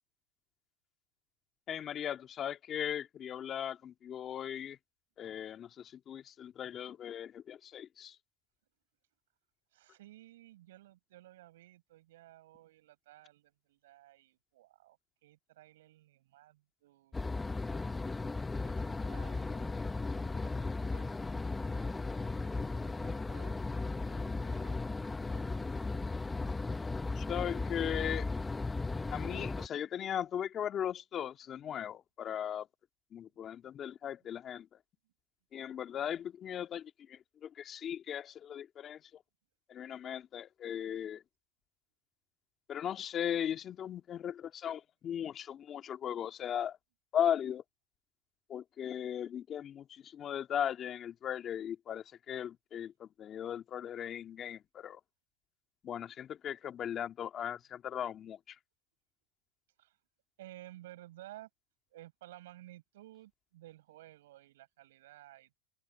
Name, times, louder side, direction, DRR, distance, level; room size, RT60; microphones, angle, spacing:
voice 1, 1.7-4.8 5.2-8.2 27.2-28.3 29.1-32.7 33.1-34.8 35.5-39.2 39.7-41.2 42.7-46.8 47.1-47.6 48.5-55.0 55.8-58.6, left 9 dB, 35° left, 1.9 m, -38 dB
voice 2, 9.7-17.9 18.6-19.9 20.2-24.8 25.2-26.0 34.2-34.3 59.8-60.0 60.4-61.5 61.9-65.6, right 15 dB, 75° right, 5.6 m, -56 dB
sound 1, 17.1-29.7, left 3 dB, 10° left, 0.7 m, -36 dB
open air
hypercardioid pair, 110°, 0 cm